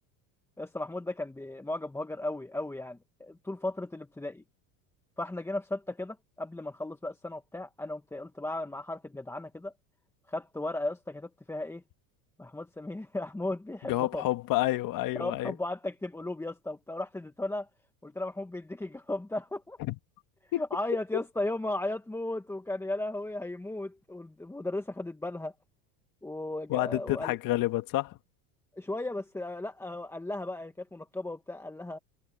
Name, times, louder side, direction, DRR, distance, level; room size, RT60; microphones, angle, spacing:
voice 1, 0.6-4.4 5.2-9.7 10.3-11.8 12.4-14.2 15.1-17.7 18.0-19.8 20.6-25.5 26.2-27.4 28.8-32.0, left 2 dB, 5° left, 1.3 m, -35 dB
voice 2, 13.8-15.5 19.8-20.0 20.5-20.6 21.1-21.2 26.7-28.2, left 16 dB, 50° left, 1.8 m, -29 dB
supercardioid pair, 120°, 43 cm